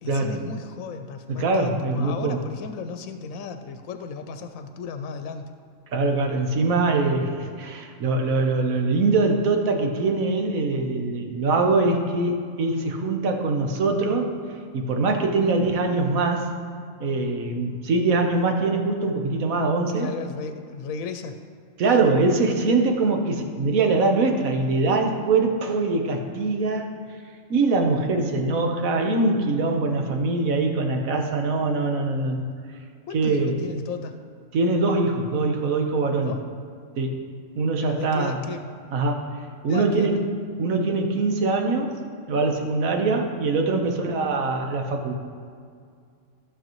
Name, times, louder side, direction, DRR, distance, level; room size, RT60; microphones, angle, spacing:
voice 1, 0.0-5.4 15.4-15.5 19.9-21.4 33.1-34.2 36.2-36.4 37.8-38.6 39.7-40.3 43.8-44.0, left 5 dB, 80° left, 7 dB, 1.0 m, -35 dB
voice 2, 1.3-2.4 5.9-16.5 17.0-20.1 21.8-26.9 27.5-32.5 33.1-33.6 34.5-36.4 37.0-37.2 37.5-38.4 38.9-39.2 39.6-40.1 40.6-45.1, right 3 dB, 85° right, 3 dB, 1.4 m, -23 dB
14.5 x 6.6 x 3.0 m, 2.2 s
omnidirectional pair, 1.4 m